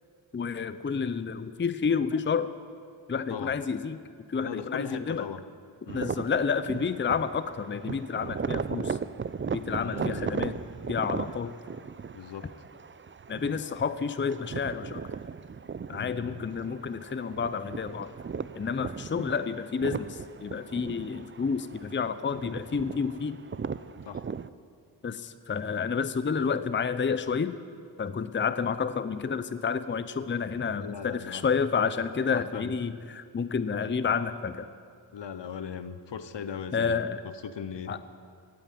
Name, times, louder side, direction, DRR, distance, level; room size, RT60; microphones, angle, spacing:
voice 1, 0.3-2.5 3.1-4.0 4.3-5.2 5.9-9.0 9.5-10.6 10.9-11.5 13.3-15.0 15.9-18.1 18.5-23.4 25.0-27.5 28.0-34.7 36.7-37.2 37.9-38.0, left 6 dB, 25° left, 13 dB, 0.6 m, -30 dB
voice 2, 4.4-5.4 5.9-6.1 9.7-10.3 12.1-12.5 15.9-16.4 24.0-24.2 30.8-31.4 32.3-32.7 35.1-37.0 37.2-38.0, left 7 dB, 70° left, 12 dB, 0.9 m, -39 dB
sound 1, 5.9-24.5, right 6 dB, 30° right, 0.4 m, -37 dB
17.0 x 9.1 x 8.5 m, 2.2 s
wide cardioid pair, 75°, 45 cm